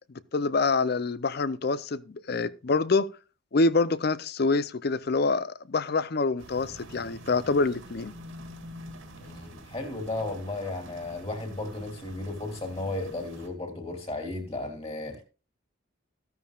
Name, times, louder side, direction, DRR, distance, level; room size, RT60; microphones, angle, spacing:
voice 1, 0.3-3.1 3.5-8.1, left 3 dB, 50° left, 0.5 m, -26 dB
sound 1, 6.4-13.5, equal, 80° right, 2.6 m, -46 dB
voice 2, 9.2-15.2, left 2 dB, 30° left, 2.7 m, -34 dB
13.5 x 13.0 x 2.4 m
head